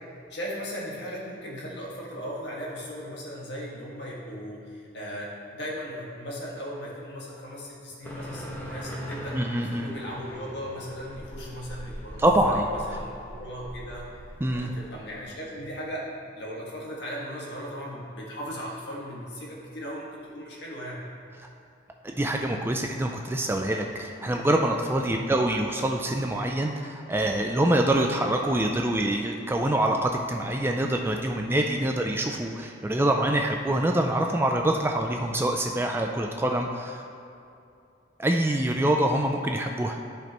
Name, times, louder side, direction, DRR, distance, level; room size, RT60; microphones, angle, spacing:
voice 1, 0.0-12.3 12.5-14.1 14.5-16.1 16.3-21.0 24.9-25.2, equal, 60° left, -4 dB, 1.7 m, -37 dB
car leaving, 8.0-15.3, equal, 10° left, 1.0 m, -41 dB
voice 2, 9.3-9.9 12.2-12.7 14.4-14.7 22.0-37.0 38.2-40.0, right 1 dB, 10° right, 2 dB, 0.3 m, -25 dB
13.5 x 5.1 x 3.0 m, 2.6 s
head